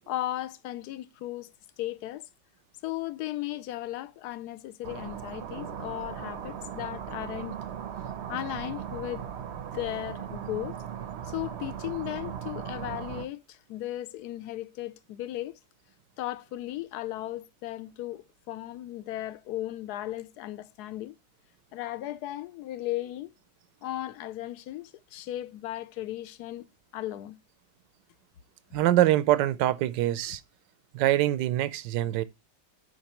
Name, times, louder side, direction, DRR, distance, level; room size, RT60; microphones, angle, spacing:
voice 1, 0.1-1.5 1.8-2.3 2.8-7.6 8.3-9.3 9.7-10.8 11.2-15.6 16.2-21.1 21.7-23.3 23.8-26.6 26.9-27.4 30.3-30.4, left 14 dB, 75° left, 1.1 m, -36 dB
sound 1, 4.8-13.3, right 9 dB, 60° right, 0.7 m, -38 dB
voice 2, 28.7-30.4 30.9-32.2, right 14 dB, 90° right, 1.3 m, -24 dB
13.5 x 5.2 x 2.9 m
omnidirectional pair, 1.9 m